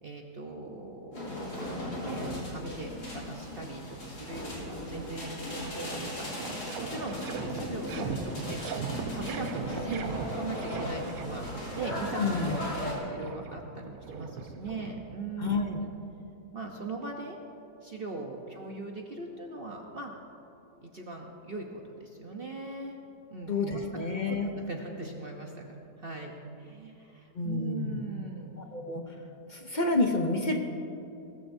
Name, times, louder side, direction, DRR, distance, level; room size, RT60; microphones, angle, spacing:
voice 1, 0.0-1.5 2.0-15.9 16.5-17.4 17.8-20.1 20.8-23.0 23.3-23.8 24.3-25.6 26.0-28.5, right 3 dB, 45° right, 1 dB, 0.9 m, -40 dB
sound 1, 1.1-12.9, left 1 dB, 65° left, 3.7 m, -37 dB
sound 2, 6.0-15.5, right 5 dB, 65° right, 1.1 m, -40 dB
voice 2, 12.2-12.6 15.4-15.8 23.5-24.5 27.4-28.0 28.6-29.0 29.5-30.6, left 3 dB, 45° left, 3 dB, 0.6 m, -29 dB
19.5 x 13.5 x 2.7 m, 2.8 s
omnidirectional pair, 1.8 m